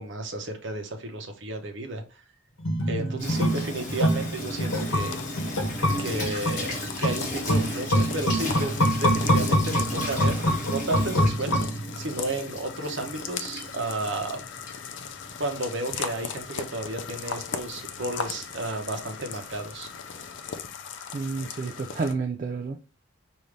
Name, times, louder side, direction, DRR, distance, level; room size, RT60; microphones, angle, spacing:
voice 1, 0.0-2.2 2.9-5.2 6.0-6.7 7.0-14.4 15.4-19.9, right 2 dB, 60° right, 0.9 m, -33 dB
sound 1, 2.6-12.2 12.5-12.6, equal, 80° left, 1.0 m, -25 dB
voice 2, 3.0-3.5 21.1-22.8, right 4 dB, 40° right, 0.3 m, -31 dB
Water tap faucet / Sink (filling or washing), 3.2-20.7, left 1 dB, 40° left, 1.5 m, -37 dB
sound 2, 4.7-22.1, left 6 dB, 60° left, 0.4 m, -39 dB
5.1 x 2.7 x 3.2 m
head